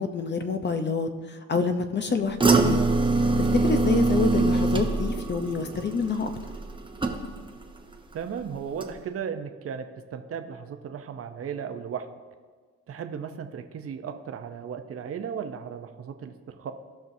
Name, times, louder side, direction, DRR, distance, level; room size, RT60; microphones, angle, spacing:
voice 1, 0.0-2.8 3.4-6.3, left 4 dB, 35° left, 8 dB, 0.8 m, -27 dB
sound 1, 2.4-7.6 7.9-8.4 8.8-8.9, right 3 dB, 15° right, 0.9 m, -24 dB
voice 2, 8.1-12.1 12.9-16.7, right 7 dB, 50° right, 7 dB, 0.8 m, -35 dB
16.0 x 5.8 x 2.7 m, 1.5 s
cardioid pair, 90°, 30 cm